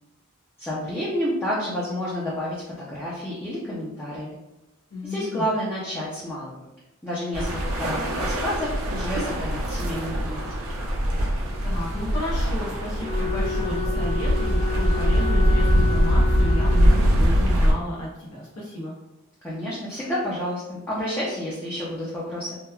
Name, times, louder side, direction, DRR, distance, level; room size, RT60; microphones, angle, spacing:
voice 1, 0.6-4.3 5.0-6.7 7.0-10.4 19.4-22.6, equal, 10° left, -8 dB, 0.4 m, -30 dB
voice 2, 4.9-5.4 11.6-18.9, equal, 85° left, -5 dB, 0.6 m, -33 dB
sound 1, 7.3-17.7, equal, 75° right, 0.6 m, -22 dB
Wind instrument woodwind instrument, 13.0-17.4, left 4 dB, 40° left, 0.7 m, -31 dB
2.9 x 2.1 x 2.3 m, 0.94 s
head